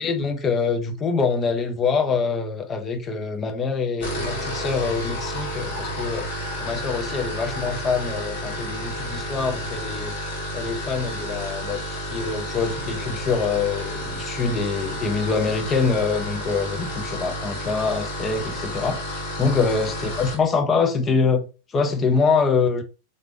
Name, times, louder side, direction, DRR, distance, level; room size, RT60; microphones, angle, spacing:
voice 1, 0.0-10.1 10.5-19.0 19.4-21.4 21.7-22.8, left 4 dB, 25° left, 0.7 m, -24 dB
sound 1, 3.9-20.4, equal, 55° left, 1.4 m, -31 dB
3.8 x 3.3 x 2.5 m
figure-of-eight pair, 90°, 0 cm